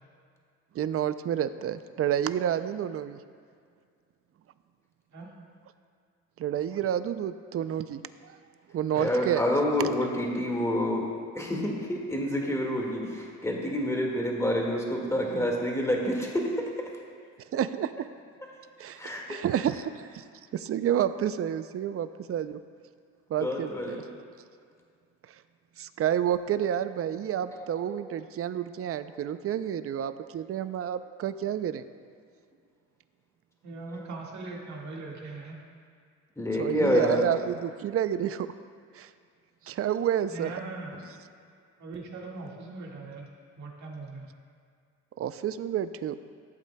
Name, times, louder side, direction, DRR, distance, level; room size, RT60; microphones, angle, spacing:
voice 1, 0.7-3.2 6.4-8.3 8.7-9.4 17.5-18.1 18.8-20.2 20.5-22.6 23.3-24.1 25.8-31.8 36.6-38.5 38.9-39.1 39.7-40.5 45.2-46.2, right 10 dB, 50° right, 12 dB, 0.4 m, -29 dB
voice 2, 9.0-11.1 11.4-16.5 19.0-19.4 23.4-24.0 27.5-28.0 29.1-29.2 33.9-34.0 36.4-37.2, equal, 10° left, -1 dB, 1.8 m, -28 dB
voice 3, 33.6-35.6 40.3-40.9 41.8-43.3 43.6-44.3, right 3 dB, 65° right, -1 dB, 1.8 m, -40 dB
15.5 x 8.1 x 2.2 m, 2.2 s
cardioid pair, 90°, 30 cm